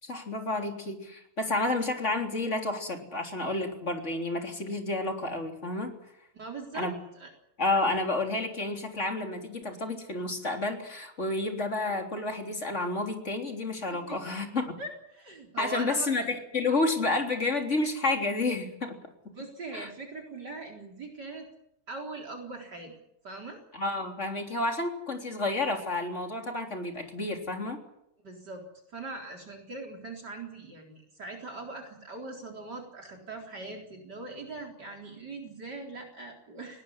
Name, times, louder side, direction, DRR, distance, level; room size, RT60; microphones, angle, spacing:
voice 1, 0.0-5.9 6.7-7.0 7.6-14.6 15.6-19.0 19.7-19.9 23.7-27.8, left 2 dB, 30° left, 4 dB, 3.9 m, -30 dB
voice 2, 6.3-7.3 14.1-14.2 14.8-16.1 19.3-21.5 21.9-22.9 23.2-23.6 28.2-36.8, right 3 dB, 50° right, 1 dB, 4.6 m, -41 dB
20.5 x 18.5 x 9.9 m, 0.79 s
omnidirectional pair, 2.4 m